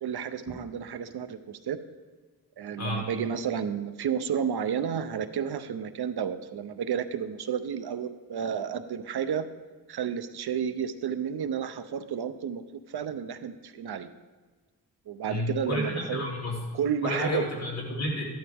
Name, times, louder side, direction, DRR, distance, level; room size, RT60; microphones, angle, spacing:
voice 1, 0.0-1.8 2.6-9.5 9.9-14.1 15.1-16.3 16.7-17.5, right 8 dB, 80° right, 11 dB, 0.8 m, -31 dB
voice 2, 2.8-3.1 15.2-16.6 17.0-18.2, left 1 dB, 40° left, -3 dB, 3.3 m, -31 dB
13.5 x 11.5 x 3.5 m, 1.4 s
wide cardioid pair, 125°, 38 cm